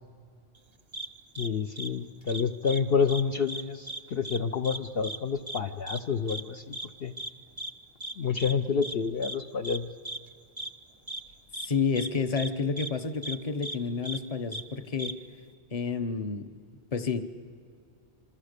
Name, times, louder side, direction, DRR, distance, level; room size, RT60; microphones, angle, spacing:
sound 1, 0.9-1.1 1.3-1.5 1.8-1.9 2.3-2.8 3.1-3.2 3.5-4.4 4.6-4.8 5.0-5.2 5.5-5.6 5.9-6.0 6.3-6.4 6.7-6.9 7.2-7.3 7.6-7.7 8.0-8.1 8.4-8.5 8.8-8.9 9.2-9.4 9.6-9.8 10.0-10.2 10.6-10.7 11.1-11.2 11.5-11.7 12.0-12.1 12.4-12.5 12.8-12.9 13.2-13.4 13.6-13.8 14.0-14.2 14.5-14.6 15.0-15.1, right 1 dB, 30° right, 0.6 m, -36 dB
voice 1, 1.4-7.1 8.2-9.9, left 5 dB, 60° left, 5 dB, 0.9 m, -29 dB
voice 2, 11.6-15.2 15.7-16.5 16.9-17.3, left 5 dB, 35° left, 8 dB, 1.0 m, -30 dB
27.0 x 25.5 x 6.7 m, 2.3 s
omnidirectional pair, 1.2 m